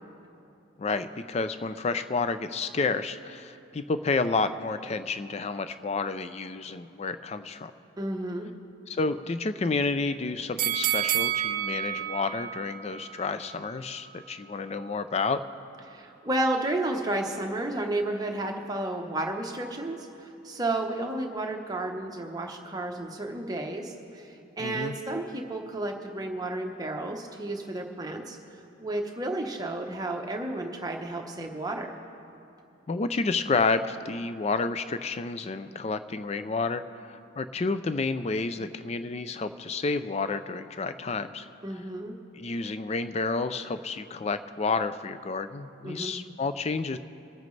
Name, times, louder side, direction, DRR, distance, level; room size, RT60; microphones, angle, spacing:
voice 1, 0.8-7.7 8.9-15.4 24.6-24.9 32.9-36.8 37.1-41.4 42.3-47.0, left 4 dB, 30° left, 11 dB, 0.4 m, -30 dB
voice 2, 8.0-8.5 15.9-28.4 28.8-31.9 41.6-42.1 45.8-46.1, right 2 dB, 20° right, 2 dB, 0.9 m, -32 dB
sound 1, 10.6-13.7 14.1-14.2, right 12 dB, 40° right, 0.5 m, -30 dB
25.0 x 9.2 x 3.3 m, 2.7 s
head